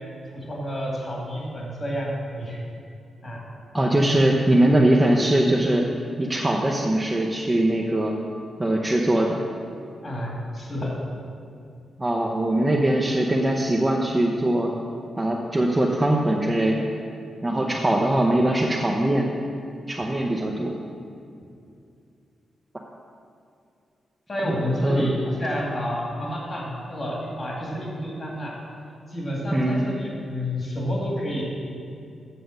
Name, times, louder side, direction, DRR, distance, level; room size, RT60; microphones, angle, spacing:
voice 1, 0.3-2.6 3.2-3.4 10.0-10.9 17.9-18.7 24.3-28.5 29.1-31.4, equal, 30° left, -3 dB, 2.3 m, -30 dB
voice 2, 3.7-5.8 6.2-8.2 8.6-9.4 12.0-14.7 15.2-16.9 17.4-19.3 19.9-20.8 24.4-24.5 24.8-25.0 29.5-29.9, right 1 dB, 15° right, -1 dB, 0.6 m, -21 dB
8.0 x 6.7 x 6.4 m, 2.5 s
wide cardioid pair, 135°, 0 cm